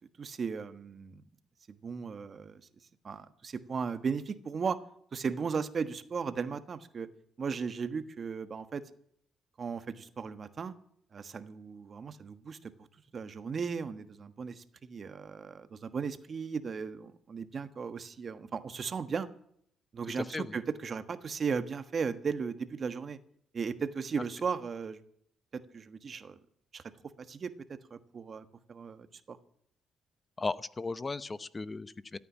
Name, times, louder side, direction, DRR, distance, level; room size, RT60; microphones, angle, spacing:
voice 1, 0.2-1.2 1.7-2.6 3.0-4.8 5.1-7.1 7.4-8.8 9.6-10.7 11.1-12.9 13.1-19.3 19.9-23.2 23.5-25.0 25.5-26.4 26.7-26.8 27.2-29.4, right 5 dB, 45° right, 11 dB, 1.3 m, -36 dB
voice 2, 20.2-20.5 30.4-32.2, left 3 dB, 25° left, 16 dB, 0.8 m, -36 dB
14.0 x 9.1 x 9.9 m, 0.67 s
cardioid pair, 90°, 0 cm